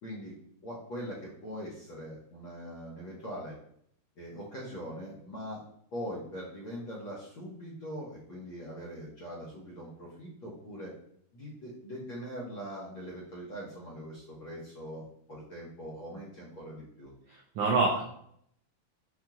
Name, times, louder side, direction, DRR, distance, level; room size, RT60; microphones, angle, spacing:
voice 1, 0.0-0.3 0.6-3.6 4.2-5.6 5.9-10.9 11.3-17.1, equal, 65° left, -7 dB, 1.3 m, -42 dB
voice 2, 17.3-18.1, right 3 dB, 90° right, -1 dB, 1.3 m, -27 dB
7.1 x 2.9 x 2.3 m, 0.69 s
omnidirectional pair, 3.4 m